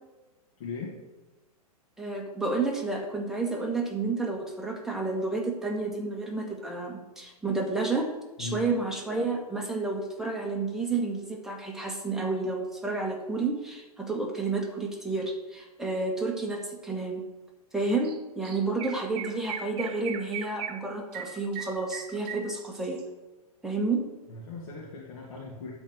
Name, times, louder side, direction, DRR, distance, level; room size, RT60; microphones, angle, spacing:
voice 1, 0.6-1.0 8.4-8.7 24.3-25.7, left 3 dB, 50° left, -4 dB, 2.4 m, -38 dB
voice 2, 2.0-8.1 8.4-17.2 17.7-23.0 23.6-24.0, right 3 dB, ahead, 0 dB, 1.6 m, -30 dB
Chirp tweet, 18.0-18.2 18.4-23.0, right 8 dB, 45° right, 1.3 m, -38 dB
12.0 x 4.4 x 7.4 m, 1.1 s
figure-of-eight pair, 110°, 20 cm